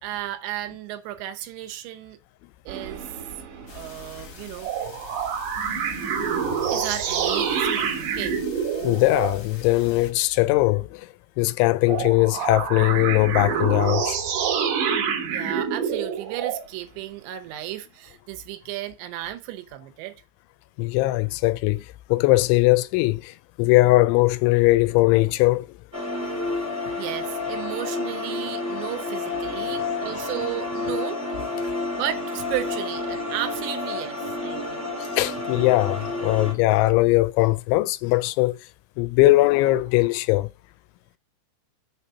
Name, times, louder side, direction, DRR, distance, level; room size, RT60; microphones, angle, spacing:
voice 1, 0.0-2.2 2.7-3.1 3.7-4.7 5.8-5.9 6.7-8.4 15.3-20.1 27.0-31.2 32.0-34.9, right 13 dB, 80° right, 3.1 m, -34 dB
sound 1, 2.7-4.3 4.6-9.4 11.8-16.7, right 7 dB, 65° right, 2.2 m, -27 dB
sound 2, 3.7-10.1, left 6 dB, 55° left, 1.6 m, -44 dB
voice 2, 8.8-11.1 11.4-14.2 20.8-25.8 29.5-29.7 31.6-31.7 35.0-38.6 39.0-40.5, left 19 dB, 90° left, 3.0 m, -20 dB
sound 3, 25.9-36.5, left 2 dB, 25° left, 0.3 m, -30 dB
6.9 x 4.1 x 5.6 m
omnidirectional pair, 5.3 m